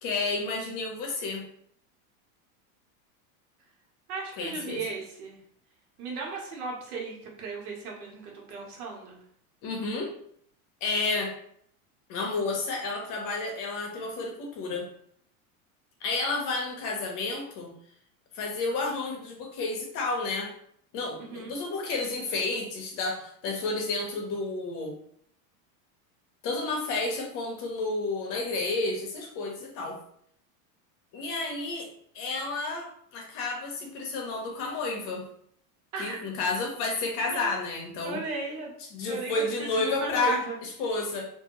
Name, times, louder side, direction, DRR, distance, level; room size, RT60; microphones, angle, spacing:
voice 1, 0.0-1.5 4.4-4.8 9.6-10.1 10.8-11.3 12.1-14.9 16.0-17.7 18.3-20.5 20.9-24.9 26.4-30.0 31.1-31.9 32.1-35.2 36.0-38.2 38.9-41.3, left 3 dB, 45° left, 1 dB, 1.0 m, -31 dB
voice 2, 4.1-5.4 6.0-9.2 21.2-21.5 35.9-36.2 37.3-37.5 38.0-38.7 39.1-39.5 39.7-40.6, right 4 dB, 90° right, -1 dB, 1.2 m, -36 dB
2.6 x 2.6 x 3.0 m, 0.66 s
supercardioid pair, 125°, 43 cm